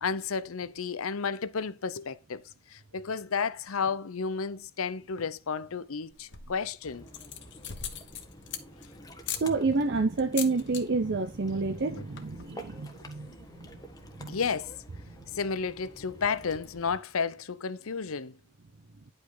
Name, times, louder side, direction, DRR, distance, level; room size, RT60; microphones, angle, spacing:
voice 1, 0.0-2.4 2.7-7.1 14.3-14.7 15.3-18.3, left 5 dB, 80° left, 0.7 m, -32 dB
sound 1, 6.1-6.6 7.1-8.9 9.2-9.5 10.2-10.8 11.1-11.4 11.7-11.8 12.0-12.4, left 9 dB, 55° left, 1.5 m, -38 dB
Ocean, 6.8-16.9, equal, 15° left, 1.3 m, -50 dB
voice 2, 9.3-13.7 14.2-14.4, right 3 dB, 55° right, 0.6 m, -29 dB
10.5 x 5.3 x 3.9 m
head